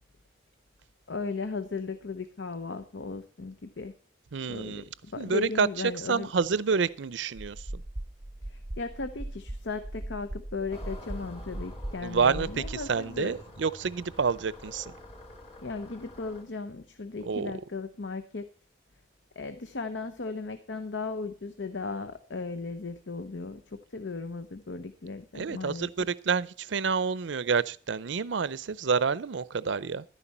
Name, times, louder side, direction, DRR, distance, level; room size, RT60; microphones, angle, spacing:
voice 1, 1.1-3.9 4.5-6.3 8.5-13.4 15.6-18.5 19.4-25.9, left 3 dB, 85° left, 0.8 m, -36 dB
voice 2, 4.3-4.8 5.2-5.7 6.1-7.6 12.0-14.9 17.2-17.5 25.3-30.0, right 5 dB, 85° right, 0.5 m, -28 dB
sound 1, 7.3-12.9, right 1 dB, 20° right, 0.6 m, -39 dB
sound 2, 10.7-16.4, left 1 dB, 35° left, 2.1 m, -47 dB
11.5 x 10.0 x 4.3 m
head